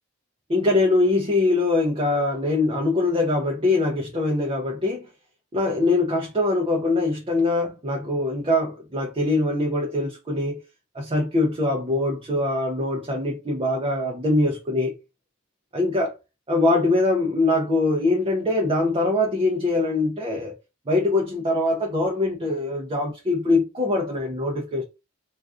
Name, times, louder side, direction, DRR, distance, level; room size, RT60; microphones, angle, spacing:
voice 1, 0.5-5.1 5.5-10.6 10.9-14.9 15.7-16.1 16.5-20.5 20.9-24.8, left 2 dB, 25° right, 0.4 m, -23 dB
2.4 x 2.3 x 2.3 m
head